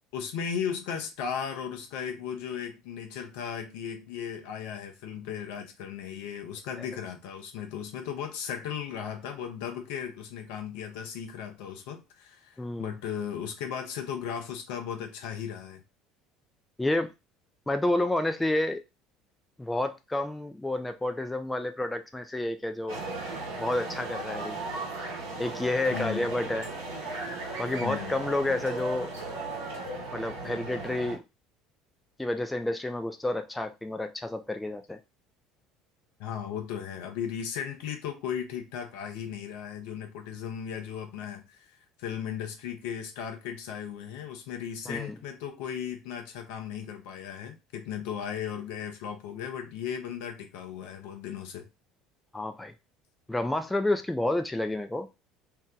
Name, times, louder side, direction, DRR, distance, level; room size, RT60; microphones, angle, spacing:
voice 1, 0.1-15.8 25.9-26.3 27.8-28.2 36.2-51.7, left 8 dB, 65° left, 0.6 m, -36 dB
voice 2, 12.6-13.0 16.8-17.1 17.7-18.8 19.6-23.0 23.6-24.6 25.4-26.7 27.6-29.1 30.1-31.2 32.2-35.0 44.9-45.2 52.3-52.7 53.3-55.1, left 1 dB, 10° left, 0.4 m, -30 dB
sound 1, 22.9-31.2, right 2 dB, 75° right, 0.9 m, -36 dB
2.8 x 2.1 x 3.6 m
figure-of-eight pair, 65°, 0 cm